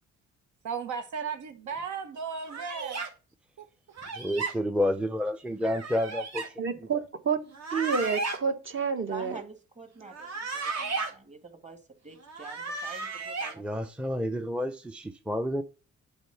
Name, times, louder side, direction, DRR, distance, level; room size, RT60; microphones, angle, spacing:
voice 1, 0.6-3.0 3.6-3.7, right 6 dB, 75° right, 1.2 m, -35 dB
sound 1, 2.5-3.1 4.0-4.5 5.6-6.5 7.5-8.4 10.1-11.1 12.2-13.5, right 3 dB, 60° right, 2.1 m, -34 dB
voice 2, 4.2-6.7 13.6-15.6, left 1 dB, 5° right, 0.6 m, -30 dB
voice 3, 6.6-7.4 7.7-9.4, right 5 dB, 40° right, 1.4 m, -29 dB
voice 4, 9.1-13.6, right 3 dB, 25° right, 2.0 m, -46 dB
8.0 x 3.8 x 5.7 m
cardioid pair, 90°, 30 cm